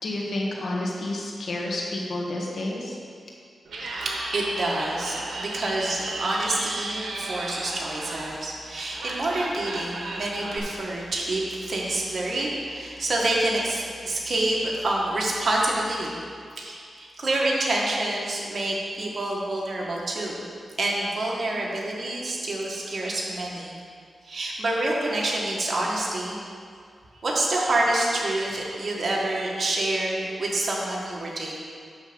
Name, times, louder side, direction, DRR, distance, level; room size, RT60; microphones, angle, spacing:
voice 1, 0.0-3.0, left 1 dB, 70° left, -2 dB, 1.6 m, -30 dB
Laughter, 3.6-10.6, right 2 dB, 90° right, 1.1 m, -35 dB
voice 2, 4.0-16.2 16.6-20.4 20.8-23.8 24.2-26.4 27.2-31.6, right 2 dB, 55° right, -4 dB, 1.7 m, -27 dB
10.5 x 3.6 x 7.0 m, 2.2 s
cardioid pair, 75°, 0 cm